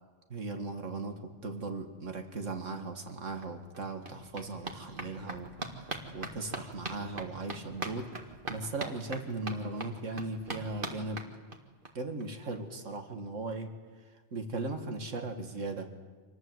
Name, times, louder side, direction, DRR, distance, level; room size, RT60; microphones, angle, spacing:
voice 1, 0.3-11.3 11.9-13.7 14.3-15.9, right 3 dB, 85° right, 5 dB, 2.2 m, -38 dB
sound 1, 3.1-3.2 3.4-11.9 12.2-12.3 12.6-12.7 12.9-13.0, right 2 dB, 45° right, 2.1 m, -42 dB
26.5 x 20.0 x 7.9 m, 1.5 s
omnidirectional pair, 1.3 m